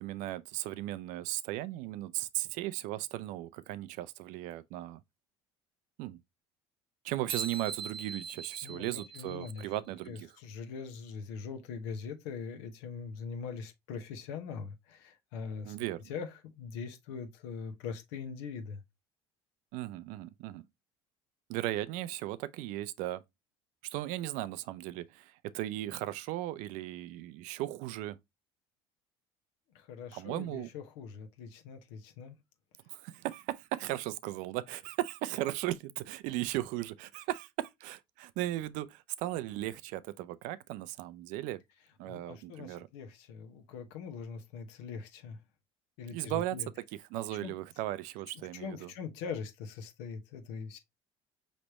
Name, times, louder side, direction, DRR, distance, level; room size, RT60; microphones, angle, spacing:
voice 1, 0.0-5.0 6.0-6.2 7.0-10.3 15.6-16.0 19.7-20.6 21.5-23.2 23.8-28.2 30.1-30.7 32.9-41.6 42.0-42.9 46.1-46.6 47.1-48.9, right 15 dB, 65° right, 0.4 m, -37 dB
sound 1, 7.3-9.9, right 5 dB, 35° right, 0.8 m, -42 dB
voice 2, 8.6-9.7 10.1-15.8 16.1-18.8 29.7-32.4 42.1-45.4 46.0-46.7 47.4-47.5 48.3-50.8, left 6 dB, 75° left, 0.9 m, -42 dB
5.0 x 3.2 x 2.8 m
hypercardioid pair, 70°, 14 cm